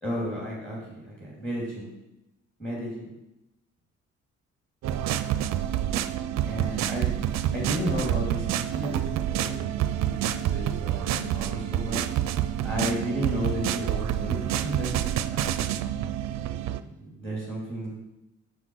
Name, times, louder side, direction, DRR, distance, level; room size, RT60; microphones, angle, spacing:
voice 1, 0.0-1.9 2.6-3.1 6.5-7.1 7.5-9.7 10.0-12.1 12.6-15.0 15.2-15.5 16.5-17.9, equal, 5° left, -4 dB, 2.5 m, -33 dB
sound 1, 4.8-16.8, right 11 dB, 65° right, 0.4 m, -28 dB
6.5 x 5.8 x 4.6 m, 0.92 s
cardioid pair, 90°, 30 cm